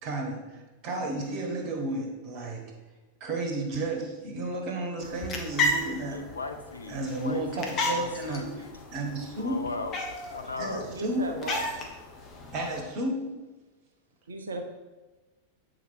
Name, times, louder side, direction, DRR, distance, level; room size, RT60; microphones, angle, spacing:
voice 1, 0.0-2.7 3.2-6.2 6.9-8.4 8.9-9.6 10.6-11.3 12.5-13.3, right 2 dB, 40° right, 2 dB, 1.7 m, -32 dB
sound 1, 5.0-12.8, left 1 dB, 35° left, 1.3 m, -34 dB
voice 2, 6.1-7.4 7.7-8.7 9.4-10.0 10.3-10.9, left 3 dB, 80° left, 7 dB, 0.7 m, -37 dB
voice 3, 10.9-11.8 14.3-14.6, right 2 dB, 70° right, 5 dB, 0.9 m, -36 dB
8.1 x 4.9 x 4.8 m, 1.2 s
figure-of-eight pair, 90°, 0 cm